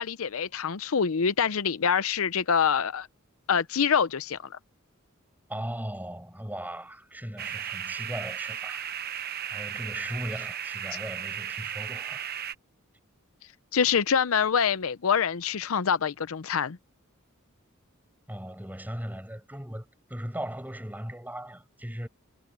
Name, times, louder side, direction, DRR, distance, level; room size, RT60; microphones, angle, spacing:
voice 1, 0.0-3.1 3.5-4.4 13.7-16.8, left 7 dB, 80° left, 0.6 m, -25 dB
voice 2, 5.5-12.3 18.3-22.1, right 1 dB, 10° right, 7.5 m, -38 dB
sound 1, 7.4-12.5, right 9 dB, 50° right, 0.9 m, -35 dB
head